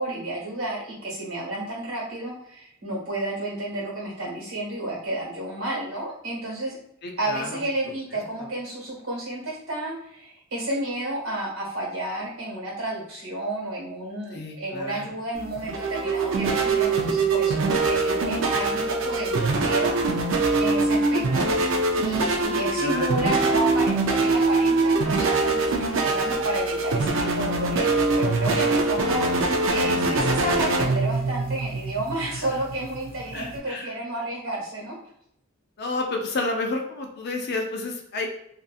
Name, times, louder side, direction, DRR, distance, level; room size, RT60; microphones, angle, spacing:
voice 1, 0.0-6.8 7.2-20.0 20.6-34.9, right 1 dB, 75° right, -4 dB, 1.4 m, -31 dB
voice 2, 7.0-7.6 8.1-8.2 14.3-15.1 22.5-23.3 32.3-32.5 33.3-33.9 35.8-38.3, left 2 dB, 50° left, 2 dB, 0.5 m, -31 dB
sound 1, 15.3-33.6, right 3 dB, 60° right, 0.4 m, -23 dB
2.6 x 2.5 x 2.3 m, 0.74 s
head